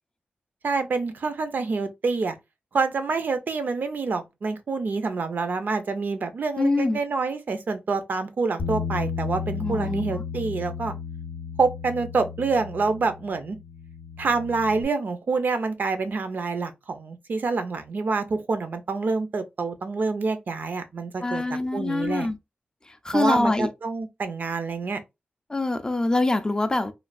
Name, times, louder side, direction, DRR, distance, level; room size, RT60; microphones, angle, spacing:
voice 1, 0.6-2.3 2.7-10.9 11.6-13.6 14.2-21.4 21.7-22.3 23.1-25.0, right 4 dB, 55° right, 0.5 m, -27 dB
voice 2, 6.6-7.0 9.6-10.2 21.2-22.4 23.0-23.7 25.5-26.9, left 2 dB, 20° left, 0.3 m, -24 dB
Bass guitar, 8.6-14.8, left 6 dB, 80° left, 0.5 m, -34 dB
3.1 x 2.3 x 2.4 m
wide cardioid pair, 115°, 4 cm